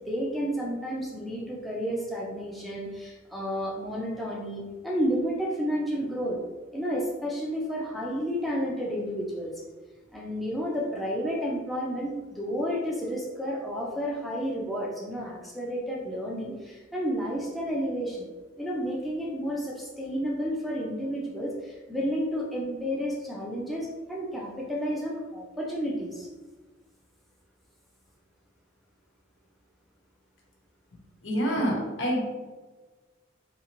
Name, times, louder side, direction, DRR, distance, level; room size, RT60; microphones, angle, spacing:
voice 1, 0.1-6.4 6.7-9.5 10.1-18.3 18.6-26.3, equal, ahead, -4 dB, 0.5 m, -31 dB
voice 2, 31.2-32.2, equal, 75° left, -2 dB, 1.1 m, -26 dB
3.8 x 2.8 x 2.9 m, 1.3 s
head